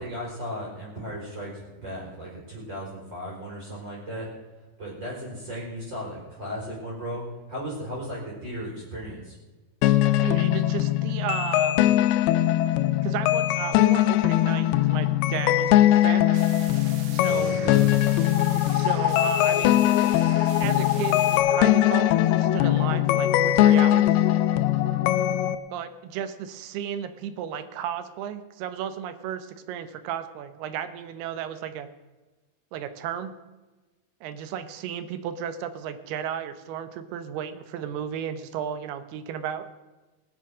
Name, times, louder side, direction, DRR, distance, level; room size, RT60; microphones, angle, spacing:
voice 1, 0.0-4.3 4.8-9.4 17.3-18.0, equal, 30° right, -5 dB, 4.6 m, -36 dB
sound 1, 9.8-25.5, left 13 dB, 85° left, 2.5 m, -21 dB
voice 2, 10.2-11.8 13.0-16.3 17.1-17.5 18.7-20.0 20.6-24.1 25.7-31.9 32.7-33.4 34.2-39.6, right 9 dB, 80° right, 11 dB, 2.9 m, -34 dB
sound 2, 16.2-21.4, right 7 dB, 65° right, 2.3 m, -43 dB
20.0 x 7.3 x 6.2 m, 1.1 s
omnidirectional pair, 4.5 m